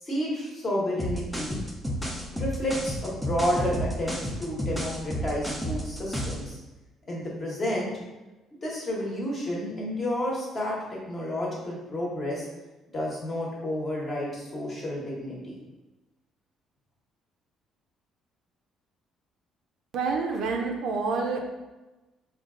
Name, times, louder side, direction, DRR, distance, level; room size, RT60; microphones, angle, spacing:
voice 1, 0.0-1.6 2.3-6.6 7.1-7.9 8.5-12.5 12.9-15.6, left 1 dB, 20° left, -4 dB, 1.1 m, -31 dB
sound 1, 1.0-6.5, equal, ahead, 0.4 m, -31 dB
voice 2, 19.9-21.5, right 4 dB, 55° right, 2 dB, 0.5 m, -28 dB
5.2 x 2.4 x 3.7 m, 1.1 s
cardioid pair, 170°, 0 cm